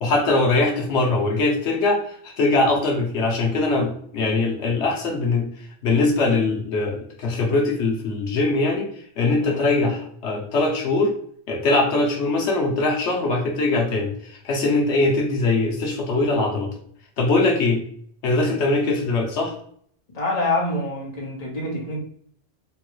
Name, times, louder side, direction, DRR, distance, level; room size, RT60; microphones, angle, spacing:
voice 1, 0.0-5.5 5.8-8.9 9.2-11.1 11.5-16.7 17.2-17.8 18.2-19.5, left 2 dB, 85° left, 0 dB, 1.1 m, -21 dB
voice 2, 20.1-22.0, left 2 dB, 35° left, -2 dB, 1.0 m, -26 dB
3.6 x 2.3 x 3.0 m, 0.62 s
omnidirectional pair, 1.1 m